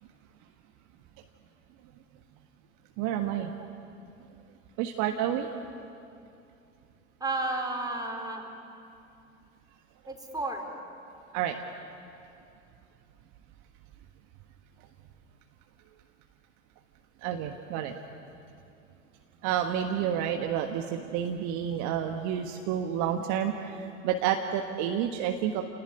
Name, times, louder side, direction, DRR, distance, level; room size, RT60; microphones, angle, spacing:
voice 1, 3.0-3.5 4.8-5.5 11.3-11.6 17.2-17.9 19.4-25.6, right 9 dB, 50° right, 4 dB, 1.5 m, -29 dB
voice 2, 7.2-8.5 10.1-10.7, right 2 dB, 10° right, 2 dB, 4.3 m, -32 dB
29.0 x 18.5 x 10.0 m, 2.6 s
figure-of-eight pair, 70°, 37 cm